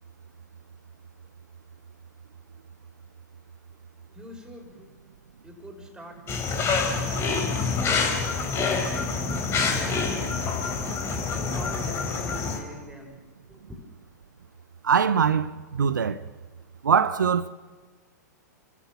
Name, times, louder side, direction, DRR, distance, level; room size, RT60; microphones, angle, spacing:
voice 1, 4.1-4.9 5.4-6.4 6.7-8.1 9.5-10.5 11.2-13.2 13.5-13.8, left 1 dB, 5° right, 5.8 m, -45 dB
sound 1, 6.3-12.6, left 4 dB, 25° left, 4.0 m, -26 dB
voice 2, 14.8-16.2 16.8-17.5, right 7 dB, 80° right, 0.8 m, -22 dB
30.0 x 14.5 x 7.0 m
hypercardioid pair, 115°, 10 cm